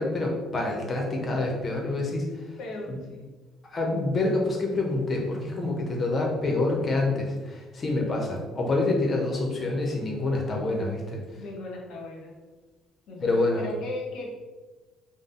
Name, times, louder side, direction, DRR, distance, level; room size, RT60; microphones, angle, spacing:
voice 1, 0.0-2.6 2.9-3.0 3.6-11.4 13.2-13.7, left 2 dB, 40° left, 0 dB, 1.2 m, -27 dB
voice 2, 2.6-3.3 11.3-12.4 13.1-14.3, left 2 dB, 60° left, 0 dB, 1.0 m, -37 dB
5.2 x 2.4 x 3.9 m, 1.2 s
figure-of-eight pair, 50°, 0 cm